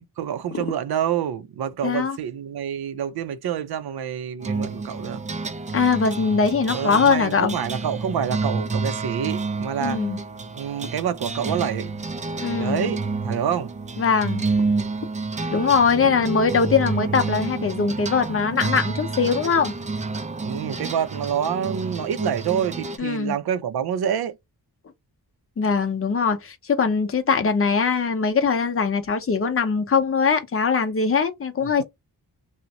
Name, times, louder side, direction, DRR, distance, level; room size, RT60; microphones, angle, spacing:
voice 1, 0.0-5.2 6.7-10.0 10.5-11.9 12.6-13.8 16.0-16.1 20.4-24.4 31.6-31.8, right 8 dB, 75° right, 0.5 m, -27 dB
voice 2, 1.8-2.2 5.7-7.6 9.8-10.2 12.4-12.9 14.0-14.4 15.5-19.7 23.0-23.3 25.6-31.8, left 5 dB, 35° left, 0.6 m, -21 dB
sound 1, 4.4-23.0, right 3 dB, 20° right, 0.3 m, -29 dB
2.5 x 2.1 x 2.7 m
wide cardioid pair, 90°, 38 cm